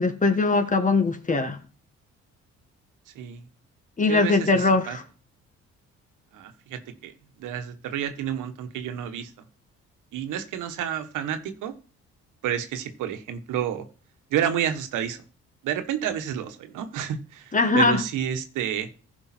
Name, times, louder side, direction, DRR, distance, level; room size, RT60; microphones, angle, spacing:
voice 1, 0.0-1.6 4.0-5.0 17.5-18.0, left 3 dB, 25° left, 1.7 m, -21 dB
voice 2, 3.1-3.4 4.1-5.0 6.3-9.3 10.1-11.7 12.4-13.8 14.3-15.2 15.6-18.9, right 9 dB, 90° right, 1.4 m, -30 dB
14.5 x 5.4 x 4.3 m
cardioid pair, 90°, 30 cm